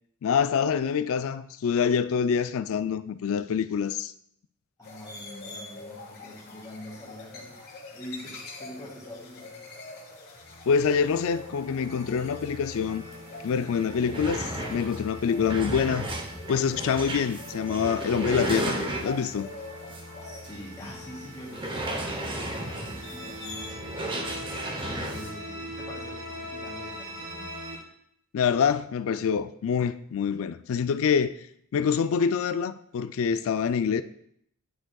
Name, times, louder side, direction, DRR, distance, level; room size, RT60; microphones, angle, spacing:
voice 1, 0.2-4.1 10.7-13.0 13.4-16.1 16.5-18.8 19.0-19.5 28.3-31.4 31.7-34.0, left 6 dB, 65° left, 0.4 m, -26 dB
sound 1, 4.8-23.7, left 2 dB, 45° left, 1.4 m, -45 dB
voice 2, 4.8-9.6 20.2-24.0 24.8-27.5, equal, 15° left, 2.7 m, -44 dB
sound 2, 10.4-27.8, equal, 75° right, 2.9 m, -42 dB
sound 3, 13.3-13.4 13.7-19.4 19.9-20.0 20.4-20.5 21.5-25.3, right 1 dB, 25° right, 0.8 m, -34 dB
9.8 x 6.2 x 2.3 m
head